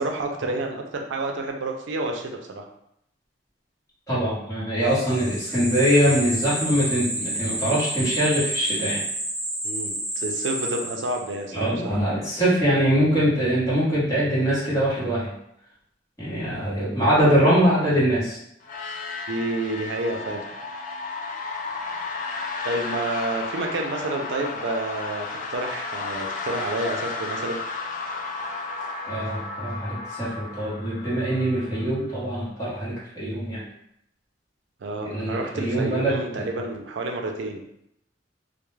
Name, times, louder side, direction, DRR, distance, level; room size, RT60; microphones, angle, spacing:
voice 1, 0.0-2.6 9.6-12.0 19.3-20.4 22.6-27.6 34.8-37.6, right 2 dB, 75° right, 2 dB, 0.4 m, -29 dB
voice 2, 4.1-9.0 11.5-15.3 16.2-18.4 29.0-33.6 35.0-36.2, equal, 20° left, -10 dB, 0.9 m, -23 dB
sound 1, 4.9-11.4, right 1 dB, 30° right, 0.7 m, -30 dB
sound 2, 18.6-32.3, left 4 dB, 45° left, 0.3 m, -33 dB
2.2 x 2.0 x 3.1 m, 0.76 s
head